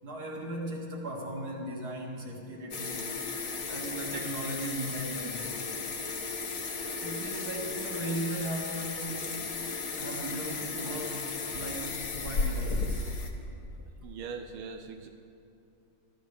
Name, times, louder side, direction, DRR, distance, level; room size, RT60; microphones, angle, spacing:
voice 1, 0.0-3.2 3.7-5.5 7.0-9.2 9.6-11.2 11.5-11.9 12.2-13.1, right 1 dB, 50° right, -2 dB, 2.7 m, -37 dB
sound 1, 2.7-13.3, left 4 dB, 50° left, 1.4 m, -35 dB
voice 2, 14.0-15.1, right 5 dB, 85° right, 5 dB, 1.6 m, -40 dB
24.0 x 14.0 x 3.4 m, 2.6 s
omnidirectional pair, 2.3 m